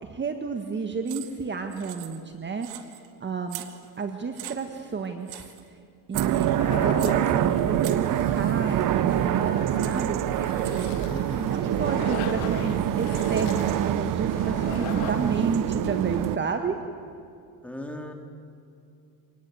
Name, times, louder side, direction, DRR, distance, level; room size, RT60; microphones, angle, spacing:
voice 1, 0.0-2.7 3.2-3.6 4.0-5.8 6.1-10.2 10.7-16.8, right 5 dB, 30° right, 6 dB, 1.7 m, -31 dB
sound 1, 1.1-1.4 1.7-2.3 2.6-3.1 3.5-4.0 4.4-4.9 5.3-5.6 6.1-7.3 7.8-8.1 9.4-9.5 9.8-11.1, right 14 dB, 75° right, 2.0 m, -40 dB
sound 2, 6.1-16.4, right 11 dB, 55° right, 1.0 m, -25 dB
sound 3, 6.4-15.7, left 12 dB, 85° left, 1.3 m, -39 dB
voice 2, 11.1-11.6 17.6-18.1, left 1 dB, 5° left, 3 dB, 3.3 m, -38 dB
25.0 x 19.5 x 7.9 m, 2.5 s
supercardioid pair, 100°, 39 cm